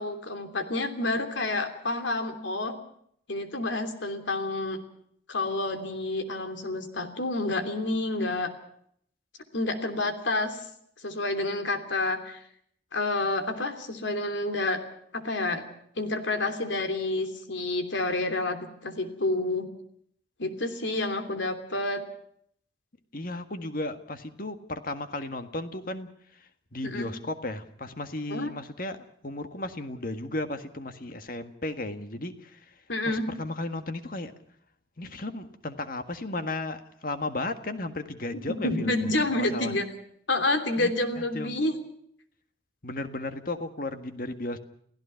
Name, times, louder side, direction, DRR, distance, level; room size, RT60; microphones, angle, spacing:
voice 1, 0.0-2.8 3.3-4.8 5.3-8.5 9.5-10.6 11.0-12.4 12.9-14.8 15.1-15.6 16.0-19.7 20.4-22.0 26.8-27.1 28.3-28.5 32.9-33.3 38.6-39.8 40.3-41.8, left 2 dB, 85° left, 7 dB, 3.1 m, -29 dB
voice 2, 23.1-32.8 33.0-34.3 35.0-39.7 40.8-41.6 42.8-44.6, left 2 dB, 50° left, 8 dB, 1.7 m, -35 dB
29.5 x 16.5 x 5.7 m, 0.68 s
head